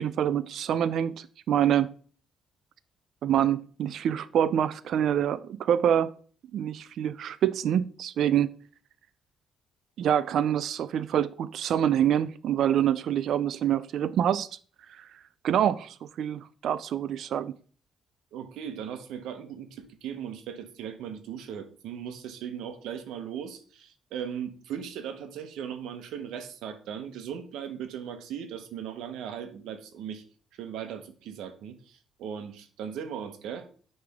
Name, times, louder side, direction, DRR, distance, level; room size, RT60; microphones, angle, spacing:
voice 1, 0.0-1.9 3.2-6.1 6.5-8.5 10.0-14.5 15.0-15.1 15.4-17.5, right 10 dB, 60° right, 0.3 m, -26 dB
voice 2, 18.3-30.2 30.5-33.7, right 8 dB, 90° right, 0.9 m, -38 dB
9.4 x 3.3 x 3.5 m
cardioid pair, 145°, 0 cm